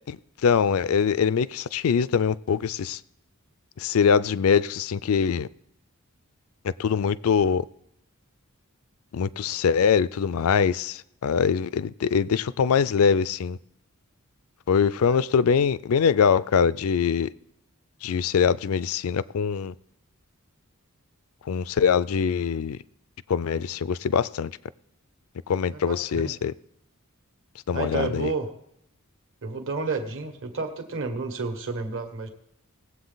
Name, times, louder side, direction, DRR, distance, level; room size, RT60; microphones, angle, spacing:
voice 1, 0.1-3.0 3.8-5.5 6.6-7.6 9.1-13.6 14.7-17.3 18.0-19.7 21.5-22.8 23.3-24.5 25.5-26.5 27.7-28.3, left 6 dB, 75° left, 0.4 m, -23 dB
voice 2, 15.0-15.7 25.7-26.3 27.7-28.5 29.4-32.3, right 3 dB, 60° right, 1.5 m, -31 dB
19.0 x 7.9 x 4.0 m
head